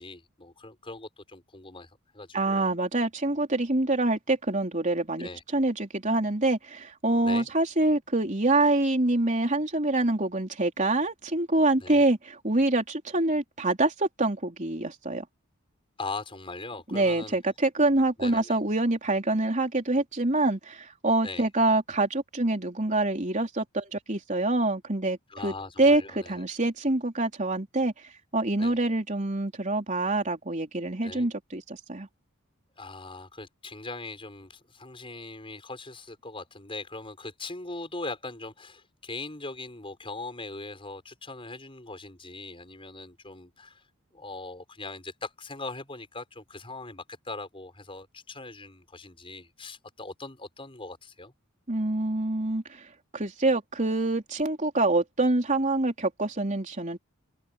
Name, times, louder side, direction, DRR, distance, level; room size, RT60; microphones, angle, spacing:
voice 1, 0.0-2.7 5.2-5.4 7.2-7.5 11.8-12.0 16.0-17.4 18.2-18.6 21.2-21.4 25.3-26.4 28.6-28.8 31.0-31.3 32.8-43.8 44.1-51.3, left 3 dB, 25° left, 6.0 m, -40 dB
voice 2, 2.3-15.2 16.9-25.2 25.4-27.9 28.3-32.1 51.7-52.8 53.1-57.0, right 2 dB, 35° right, 3.7 m, -26 dB
head